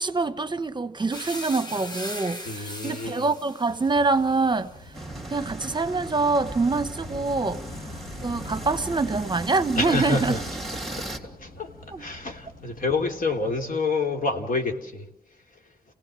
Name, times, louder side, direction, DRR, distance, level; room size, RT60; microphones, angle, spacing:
voice 1, 0.0-4.7 5.3-7.6 8.2-10.4 11.9-12.0, right 3 dB, 30° right, 1.0 m, -25 dB
sound 1, 1.1-9.1 9.4-10.5, left 1 dB, 30° left, 2.2 m, -42 dB
voice 2, 2.4-3.3 9.7-10.4 11.4-11.7 12.0-15.1, left 3 dB, 65° left, 3.1 m, -27 dB
Wind / Waves surf, 3.7-13.7, left 1 dB, 80° left, 4.3 m, -44 dB
sound 2, 4.9-11.2, right 1 dB, ahead, 3.0 m, -37 dB
28.5 x 17.0 x 7.6 m
wide cardioid pair, 110°, 15 cm